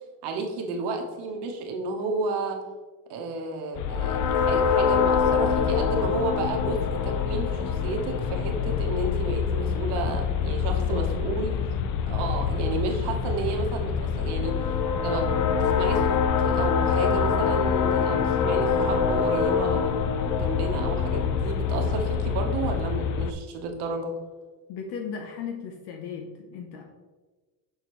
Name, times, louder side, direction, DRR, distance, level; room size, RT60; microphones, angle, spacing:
voice 1, 0.2-2.6 3.1-11.5 12.1-14.6 15.0-24.1, right 3 dB, 60° right, 2 dB, 1.3 m, -32 dB
sound 1, 3.8-23.3, left 6 dB, 45° left, 0.5 m, -25 dB
voice 2, 10.7-11.1 24.7-26.8, left 6 dB, 65° left, 3 dB, 0.8 m, -36 dB
6.6 x 6.3 x 3.1 m, 1.3 s
cardioid pair, 150°, 45 cm